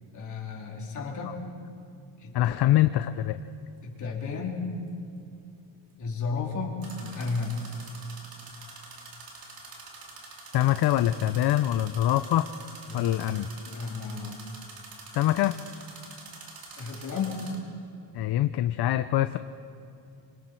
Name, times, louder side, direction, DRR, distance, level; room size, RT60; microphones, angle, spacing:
voice 1, 0.1-1.4 2.2-2.7 3.8-4.7 6.0-7.6 12.9-14.4 16.7-17.5, left 4 dB, 40° left, -2 dB, 3.4 m, -33 dB
voice 2, 2.3-3.4 10.5-12.5 12.9-13.5 15.1-15.6 18.1-19.4, left 13 dB, 55° left, 11 dB, 0.6 m, -24 dB
sound 1, 3.0-3.1 6.8-17.6, right 3 dB, 45° right, 2.9 m, -46 dB
25.5 x 25.5 x 4.5 m, 2.6 s
cardioid pair, 165°, 47 cm